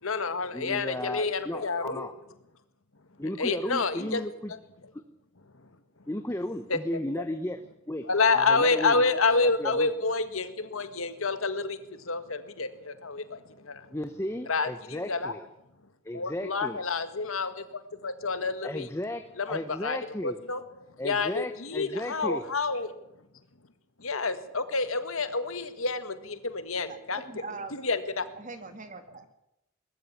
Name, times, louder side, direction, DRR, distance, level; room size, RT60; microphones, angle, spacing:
voice 1, 0.0-2.1 3.4-4.2 6.7-6.8 7.2-7.3 8.1-13.9 14.5-15.3 16.1-18.9 19.4-20.0 20.2-20.6 21.0-22.9 24.0-27.2 27.7-28.3, left 4 dB, 80° left, 10 dB, 1.8 m, -28 dB
voice 2, 0.5-2.1 3.2-4.5 4.9-5.0 6.1-7.6 7.9-8.1 8.3-9.0 9.4-9.9 13.9-15.5 16.0-16.8 18.6-20.4 21.0-22.4, left 1 dB, 10° left, 8 dB, 0.8 m, -35 dB
voice 3, 27.2-27.8 28.3-29.2, right 3 dB, 35° right, 8 dB, 2.1 m, -41 dB
20.0 x 14.0 x 10.0 m, 0.85 s
head